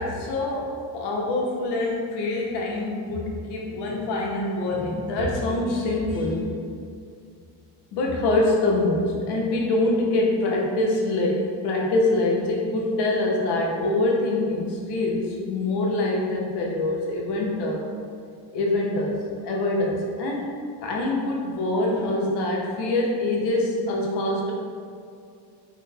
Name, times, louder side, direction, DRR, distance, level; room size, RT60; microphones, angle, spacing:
voice 1, 0.0-6.4 7.9-17.9 18.5-19.2 19.4-20.5 20.8-24.5, left 2 dB, 80° left, -2 dB, 0.8 m, -25 dB
3.2 x 2.0 x 4.0 m, 2.3 s
cardioid pair, 150°, 40 cm